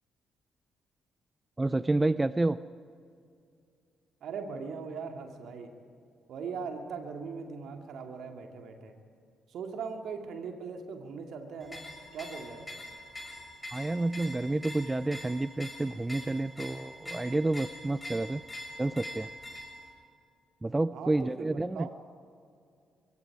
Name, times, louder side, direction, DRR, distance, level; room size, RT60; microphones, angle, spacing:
voice 1, 1.6-2.6 13.7-18.4 18.8-19.3 20.6-21.9, right 2 dB, 20° right, 16 dB, 0.5 m, -29 dB
voice 2, 4.2-5.7 6.3-9.0 9.5-11.8 12.1-12.7 20.9-21.9, right 5 dB, 60° right, 4 dB, 2.4 m, -40 dB
sound 1, 11.6-19.9, left 1 dB, 20° left, 6.6 m, -44 dB
24.5 x 22.5 x 4.9 m, 2.3 s
figure-of-eight pair, 40°, 0 cm